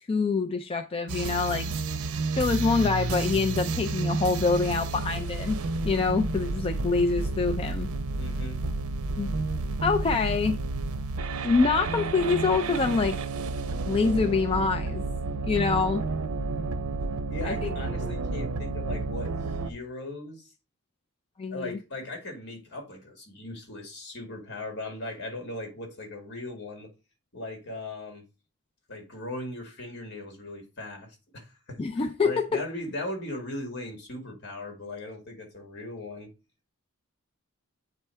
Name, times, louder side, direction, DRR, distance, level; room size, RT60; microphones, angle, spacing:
voice 1, 0.1-1.7 2.4-5.6 5.8-7.9 9.2-9.3 9.8-10.6 11.4-13.2 13.8-15.0 15.5-16.0 17.4-17.7 21.4-21.8 31.8-32.6, left 4 dB, 25° left, 0.3 m, -25 dB
sound 1, 1.1-19.7, right 3 dB, 90° right, 0.6 m, -31 dB
voice 2, 8.2-8.6 17.3-19.3 19.6-20.5 21.5-26.9 27.3-28.2 28.9-31.8 32.2-36.3, left 2 dB, 55° left, 2.1 m, -38 dB
8.1 x 3.3 x 4.4 m
head